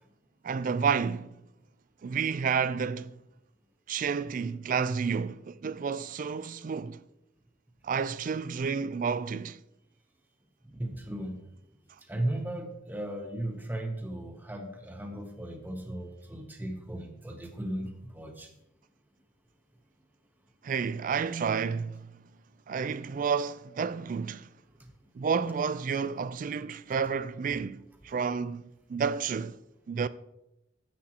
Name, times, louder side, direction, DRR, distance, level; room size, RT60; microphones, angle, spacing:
voice 1, 0.4-1.3 2.0-3.1 3.9-7.0 7.8-9.6 20.6-22.1 22.7-24.5 25.2-28.6 28.9-29.6 29.9-30.1, right 6 dB, 45° right, 0.3 m, -30 dB
voice 2, 10.6-11.5 12.1-18.5, right 1 dB, 10° right, 0.8 m, -36 dB
10.0 x 7.6 x 2.9 m
head